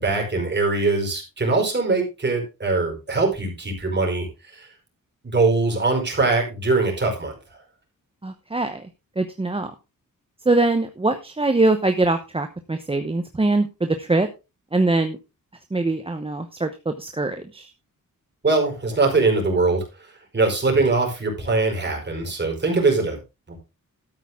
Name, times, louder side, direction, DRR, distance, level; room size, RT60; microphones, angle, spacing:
voice 1, 0.0-4.3 4.5-4.7 5.2-7.3 18.4-19.8 20.3-23.2 23.5-23.6, right 3 dB, 30° right, 1 dB, 5.0 m, -22 dB
voice 2, 8.2-8.8 9.2-9.7 10.4-14.3 14.7-15.2 15.7-17.7 22.7-22.8, right 2 dB, 15° right, 7 dB, 0.9 m, -23 dB
13.0 x 8.9 x 3.6 m, 0.27 s
wide cardioid pair, 175°, 33 cm